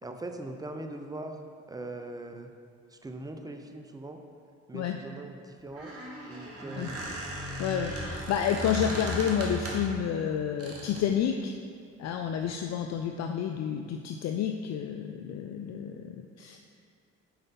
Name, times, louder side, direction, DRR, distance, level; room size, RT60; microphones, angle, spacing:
voice 1, 0.0-2.5 2.9-4.2 4.7-5.9 6.2-7.2, right 2 dB, 10° right, 5 dB, 0.7 m, -41 dB
Squeak, 5.6-10.0 10.6-11.1, equal, 45° right, 1.7 m, -36 dB
voice 2, 7.6-11.5 12.0-16.6, left 8 dB, 55° left, 5 dB, 0.5 m, -30 dB
5.6 x 5.2 x 5.7 m, 2.3 s
supercardioid pair, 65°, 32 cm